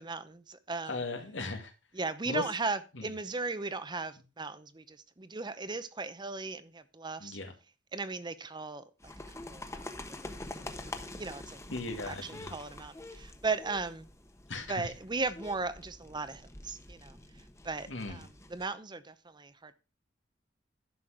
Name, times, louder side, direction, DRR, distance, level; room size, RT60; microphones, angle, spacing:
voice 1, 0.0-1.0 1.9-7.4 7.9-9.1 9.5-9.9 10.6-10.7 11.2-11.6 12.0-14.1 14.7-17.2 17.6-19.7, right 3 dB, 25° right, 13 dB, 0.7 m, -37 dB
voice 2, 0.9-1.7 2.3-2.4 2.9-3.1 7.2-7.5 11.7-12.5 14.5-14.9 17.9-18.3, left 3 dB, 85° left, 5 dB, 2.2 m, -37 dB
sound 1, 9.0-18.7, left 2 dB, 15° left, 1.1 m, -46 dB
11.5 x 6.3 x 4.9 m, 0.31 s
head